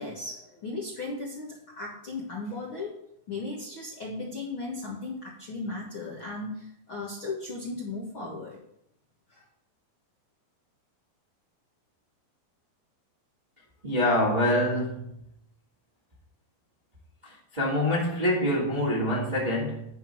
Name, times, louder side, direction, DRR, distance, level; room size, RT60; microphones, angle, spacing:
voice 1, 0.0-3.0 3.3-8.6 9.3-9.4, left 3 dB, 55° left, 1.4 m, -36 dB
voice 2, 13.8-15.1 17.2-19.9, left 1 dB, 20° right, 1.1 m, -25 dB
10.5 x 3.9 x 7.6 m
omnidirectional pair, 4.7 m